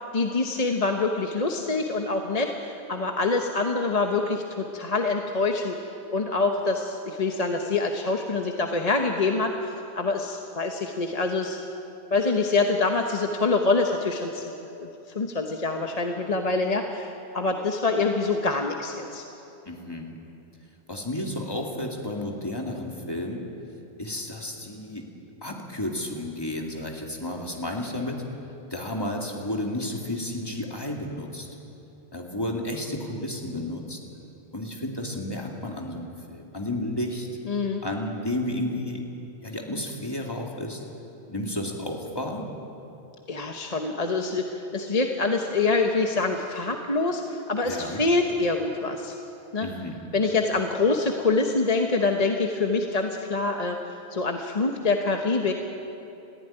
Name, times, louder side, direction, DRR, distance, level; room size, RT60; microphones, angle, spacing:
voice 1, 0.1-5.8 6.1-11.6 12.1-14.9 15.1-19.2 37.4-37.8 43.3-49.1 49.5-49.7 50.1-53.8 54.1-55.5, left 3 dB, 35° left, 3 dB, 1.1 m, -25 dB
voice 2, 19.7-20.2 20.9-23.4 24.0-25.1 25.4-28.2 28.7-31.5 32.1-34.0 34.5-37.3 37.8-39.0 39.4-40.8 41.3-42.4 47.6-48.0 49.6-50.0, left 1 dB, 20° left, 0 dB, 2.5 m, -32 dB
20.5 x 15.0 x 10.0 m, 2.9 s
omnidirectional pair, 1.1 m